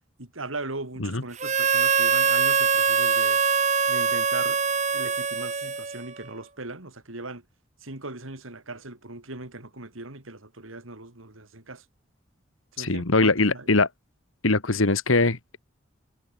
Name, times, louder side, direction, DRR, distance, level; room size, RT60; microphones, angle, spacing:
voice 1, 0.2-3.4 3.9-4.6 4.9-7.4 7.8-11.8 12.8-13.7, right 2 dB, 85° right, 3.5 m, -39 dB
Harmonica, 1.4-6.2, right 6 dB, 35° right, 1.4 m, -23 dB
voice 2, 12.8-13.9 14.4-15.4, left 3 dB, 85° left, 1.8 m, -21 dB
head